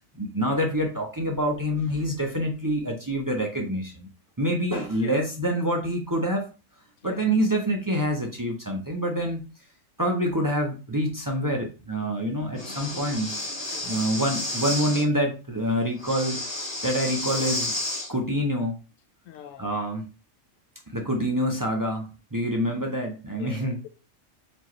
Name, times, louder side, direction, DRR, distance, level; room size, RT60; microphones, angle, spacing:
voice 1, 0.2-4.1 4.4-6.5 7.0-9.4 10.0-13.3 13.8-16.4 16.8-17.7 18.1-18.8 19.6-20.1 20.9-23.8, equal, 25° right, 0.5 m, -26 dB
Breathing, 12.6-15.0 16.0-18.1, left 1 dB, 25° left, 0.9 m, -31 dB
voice 2, 13.7-14.0 19.3-19.7 23.4-23.9, left 10 dB, 80° left, 1.0 m, -43 dB
4.4 x 3.0 x 3.0 m
omnidirectional pair, 1.3 m